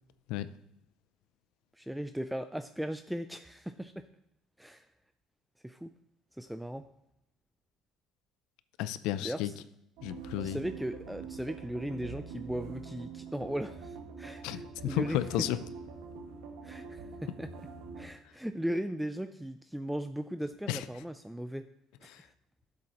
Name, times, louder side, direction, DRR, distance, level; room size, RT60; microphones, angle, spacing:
voice 1, 1.8-4.0 4.6-4.9 5.6-5.9 6.4-6.8 9.2-9.6 10.4-15.2 16.6-17.5 18.0-21.7 22.0-22.3, equal, 5° right, 9 dB, 0.3 m, -37 dB
voice 2, 8.8-9.5 10.0-10.6 14.4-15.6 20.7-20.8 22.1-22.2, left 13 dB, 80° left, 14 dB, 0.4 m, -32 dB
sound 1, 10.0-18.1, right 5 dB, 85° right, 1.7 m, -45 dB
11.0 x 7.6 x 3.0 m, 0.85 s
cardioid pair, 115°, 0 cm